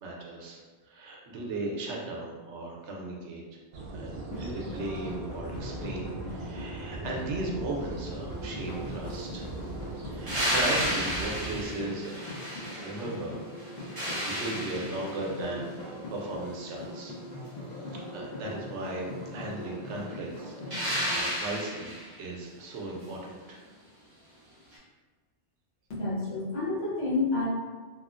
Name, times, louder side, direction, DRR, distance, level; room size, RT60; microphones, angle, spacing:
voice 1, 0.0-3.4 3.9-9.5 10.1-12.2 12.6-13.4 13.9-17.1 17.7-21.9 22.2-23.6, right 2 dB, 85° right, -1 dB, 0.9 m, -37 dB
sound 1, 3.7-11.6, right 2 dB, 60° right, 0.6 m, -40 dB
sound 2, 4.2-21.2, left 1 dB, 50° left, 0.6 m, -41 dB
sound 3, 10.3-13.2 13.6-15.3 20.7-22.1 24.7-24.8, equal, 20° right, 0.8 m, -32 dB
voice 2, 25.9-27.5, left 3 dB, 75° left, -8 dB, 1.3 m, -29 dB
2.9 x 2.4 x 2.4 m, 1.4 s
omnidirectional pair, 1.2 m